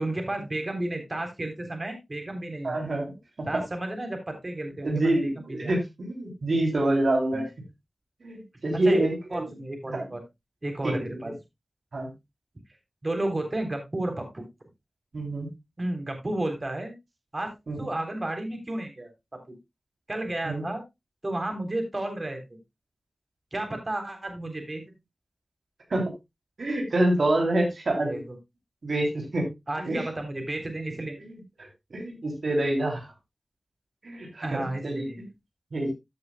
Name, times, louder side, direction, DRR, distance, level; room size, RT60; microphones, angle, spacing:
voice 1, 0.0-2.8 3.5-5.7 7.3-7.5 8.9-9.0 9.3-10.2 10.6-11.3 13.0-14.4 15.8-16.9 17.3-17.5 17.8-19.5 20.1-20.8 21.2-22.6 23.5-24.8 28.0-28.4 29.7-31.2 34.4-35.2, right 1 dB, 40° right, 5 dB, 3.7 m, -32 dB
voice 2, 2.6-3.6 4.8-7.4 8.2-9.5 9.9-10.0 10.8-11.0 11.9-12.1 15.1-15.5 17.7-17.8 20.4-20.6 25.9-26.1 26.6-28.2 28.8-29.5 29.8-30.1 31.2-33.1 34.0-35.1 35.7-35.9, right 1 dB, 80° right, 1 dB, 3.2 m, -27 dB
14.5 x 7.8 x 2.3 m, 0.21 s
wide cardioid pair, 50°, 0 cm